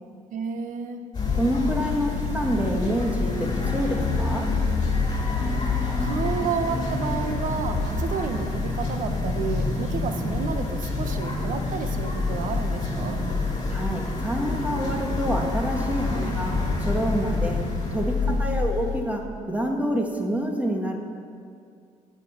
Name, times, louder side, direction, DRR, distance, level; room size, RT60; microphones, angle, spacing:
voice 1, 0.3-1.0 6.0-13.2 16.1-16.3 18.2-18.7, right 6 dB, 70° right, 7 dB, 1.3 m, -31 dB
sound 1, 1.1-19.0, left 3 dB, 35° left, 4.6 m, -27 dB
voice 2, 1.3-4.5 13.7-17.6 17.9-21.0, equal, 10° right, 1 dB, 2.1 m, -27 dB
17.5 x 9.1 x 6.0 m, 2.3 s
cardioid pair, 95°, 14 cm